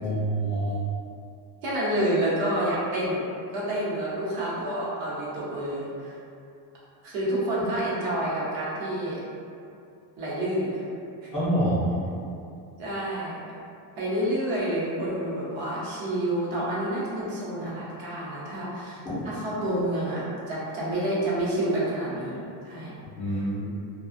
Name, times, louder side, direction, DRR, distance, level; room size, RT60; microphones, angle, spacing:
voice 1, 0.0-0.8 11.3-12.0 19.0-19.3 23.2-23.7, right 1 dB, 15° left, -14 dB, 0.4 m, -26 dB
voice 2, 1.6-3.2 3.5-6.1 7.0-9.2 10.2-10.8 11.2-11.3 12.8-13.4 14.0-23.0 23.3-23.4, right 1 dB, 75° right, -7 dB, 0.9 m, -29 dB
2.4 x 2.3 x 2.5 m, 2.6 s
cardioid pair, 175°, 46 cm